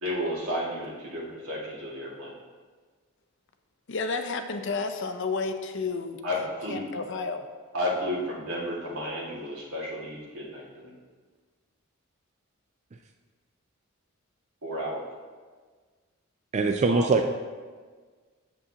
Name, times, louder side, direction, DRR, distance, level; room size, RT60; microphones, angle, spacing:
voice 1, 0.0-2.3 6.2-6.8 7.7-10.9 14.6-15.0 16.9-17.3, equal, 85° right, -5 dB, 2.0 m, -32 dB
voice 2, 3.9-7.4, left 4 dB, 60° left, 7 dB, 0.6 m, -31 dB
voice 3, 16.5-17.3, right 3 dB, 35° right, 5 dB, 0.3 m, -22 dB
8.3 x 7.1 x 2.8 m, 1.5 s
head